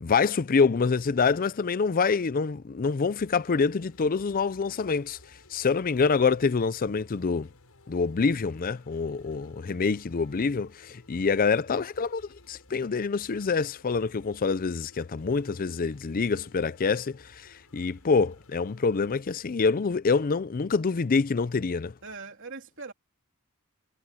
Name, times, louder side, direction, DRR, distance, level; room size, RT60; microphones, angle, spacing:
voice 1, 0.0-5.2 5.5-7.5 7.9-21.9, left 4 dB, 40° left, 0.5 m, -26 dB
sound 1, 3.2-19.2, left 2 dB, 80° left, 7.9 m, -57 dB
voice 2, 9.7-10.0 22.0-22.9, right 4 dB, 60° right, 3.1 m, -42 dB
head